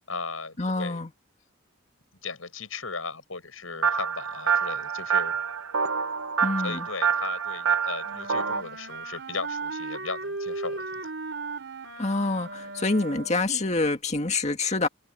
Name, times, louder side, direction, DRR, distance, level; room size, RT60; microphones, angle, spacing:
voice 1, 0.1-1.0 2.2-5.4 6.6-11.1, left 4 dB, 80° left, 7.2 m, -37 dB
voice 2, 0.6-1.1 6.4-6.9 12.0-14.9, left 3 dB, 35° left, 1.9 m, -26 dB
sound 1, 3.8-8.6, right 6 dB, 90° right, 1.0 m, -27 dB
Wind instrument woodwind instrument, 8.0-13.6, right 3 dB, 60° right, 3.8 m, -36 dB
open air
head